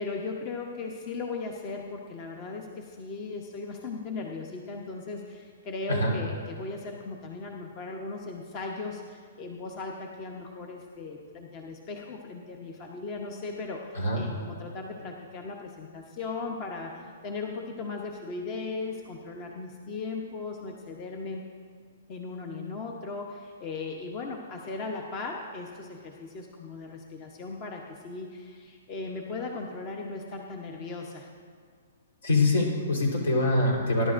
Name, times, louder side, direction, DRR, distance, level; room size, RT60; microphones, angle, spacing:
voice 1, 0.0-21.4 22.1-31.3, left 3 dB, 30° left, 2 dB, 0.8 m, -37 dB
voice 2, 32.2-34.1, left 2 dB, 80° left, -1 dB, 3.8 m, -24 dB
20.5 x 11.0 x 2.6 m, 2.1 s
hypercardioid pair, 155°, 0 cm